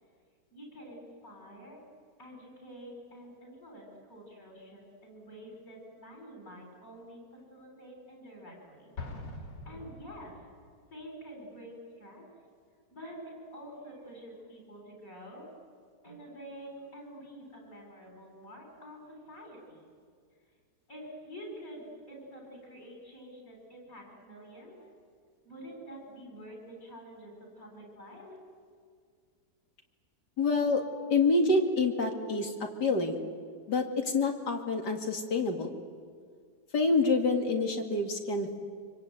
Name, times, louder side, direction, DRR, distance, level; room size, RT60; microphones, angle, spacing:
voice 1, 0.5-1.8 2.2-9.0 9.6-10.4 10.9-12.3 12.9-15.5 16.0-19.9 20.9-24.9 25.4-28.4, equal, 50° left, 0 dB, 8.5 m, -48 dB
Explosion, 9.0-10.7, left 2 dB, 85° left, 3.3 m, -43 dB
voice 2, 30.4-30.8 31.1-33.2 33.7-35.8 36.7-38.6, left 3 dB, 70° left, 4 dB, 2.9 m, -27 dB
25.0 x 24.5 x 9.4 m, 2.1 s
omnidirectional pair, 1.9 m